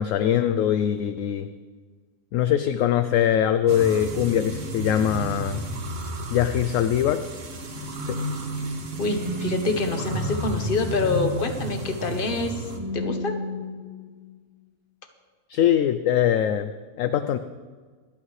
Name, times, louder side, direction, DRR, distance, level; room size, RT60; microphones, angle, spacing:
voice 1, 0.0-1.5 2.3-5.6 6.3-7.2 8.1-8.2 15.5-16.7 17.0-17.4, left 10 dB, 70° left, 10 dB, 0.9 m, -22 dB
sound 1, 3.7-12.8, right 1 dB, 55° right, 1.6 m, -34 dB
sound 2, 5.1-6.2 7.8-14.2, equal, 20° right, 2.4 m, -33 dB
voice 2, 9.0-12.7 12.9-13.4, left 3 dB, 40° left, 6 dB, 1.2 m, -26 dB
26.5 x 8.9 x 3.2 m, 1.5 s
omnidirectional pair, 1.5 m